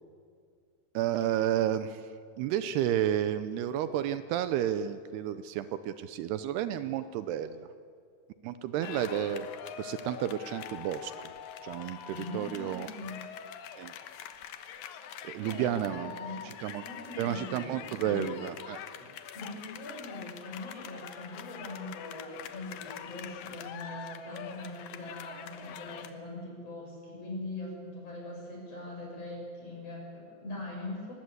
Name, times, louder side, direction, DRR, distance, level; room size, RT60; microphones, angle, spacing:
voice 1, 0.9-2.0 2.4-7.7 8.4-9.5 9.8-11.1 11.6-12.9 13.8-13.9 15.2-16.1 16.5-16.8 17.2-18.8, right 11 dB, 80° right, 12 dB, 2.7 m, -31 dB
sound 1, 8.8-26.1, left 9 dB, 70° left, 2.4 m, -44 dB
voice 2, 12.1-13.1 15.4-16.4 16.8-18.4 19.3-31.1, left 2 dB, 35° left, 0 dB, 6.9 m, -41 dB
24.0 x 20.0 x 8.1 m, 2.2 s
omnidirectional pair, 4.8 m